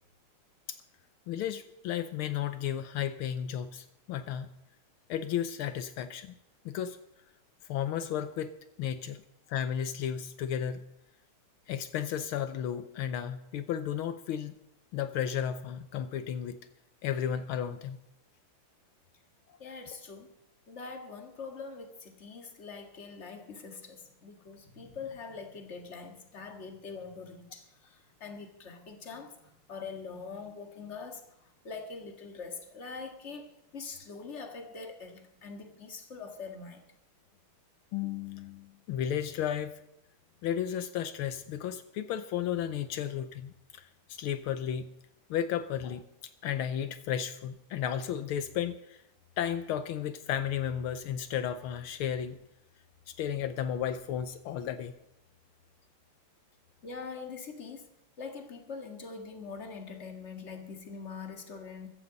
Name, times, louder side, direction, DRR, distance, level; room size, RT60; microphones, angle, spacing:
voice 1, 1.3-4.5 5.1-6.4 6.6-7.0 7.6-8.5 8.8-9.2 9.5-10.9 11.7-14.5 14.9-16.6 17.0-18.0 37.9-39.8 40.4-44.9 45.3-46.0 46.4-49.0 49.4-52.4 53.1-54.9, left 9 dB, 80° left, 11 dB, 1.6 m, -33 dB
voice 2, 19.6-20.3 20.7-31.2 31.6-36.8 56.8-57.9 58.2-61.9, left 4 dB, 35° left, 4 dB, 2.0 m, -43 dB
15.0 x 15.0 x 4.0 m, 0.83 s
omnidirectional pair, 2.3 m